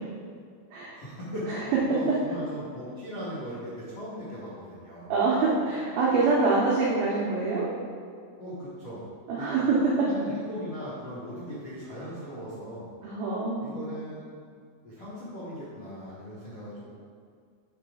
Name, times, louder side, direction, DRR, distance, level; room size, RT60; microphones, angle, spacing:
voice 1, 0.9-5.1 8.4-9.0 9.4-9.5 10.1-12.8 13.6-14.3 14.8-16.8, equal, 90° left, -11 dB, 1.4 m, -38 dB
voice 2, 5.1-7.7 9.3-9.8 13.0-13.7, right 4 dB, 85° right, -6 dB, 2.1 m, -25 dB
5.9 x 5.4 x 4.7 m, 2.1 s
omnidirectional pair, 5.5 m